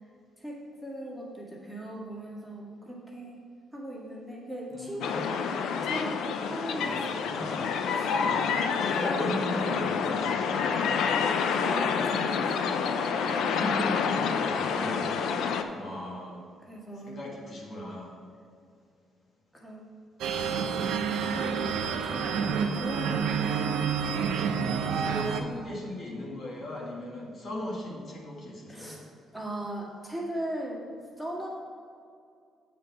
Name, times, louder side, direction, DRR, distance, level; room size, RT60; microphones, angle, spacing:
voice 1, 0.4-3.4 3.7-5.2 5.8-7.3 7.9-8.2 8.8-9.1 11.5-13.0 15.2-15.5 16.7-17.2 19.5-19.8 20.6-23.8 28.7-29.0 29.3-30.9 31.2-31.5, right 1 dB, ahead, -4 dB, 2.0 m, -39 dB
voice 2, 4.7-5.4 6.8-7.9 8.2-10.7 13.4-15.2 15.7-16.4 17.0-18.1 21.3-21.4 24.3-29.0, left 1 dB, 55° left, -3 dB, 2.0 m, -38 dB
sound 1, 5.0-15.6, left 6 dB, 80° left, 0.5 m, -28 dB
sound 2, 20.2-25.4, right 6 dB, 85° right, 0.6 m, -29 dB
8.4 x 5.3 x 5.6 m, 2.4 s
cardioid pair, 90°, 0 cm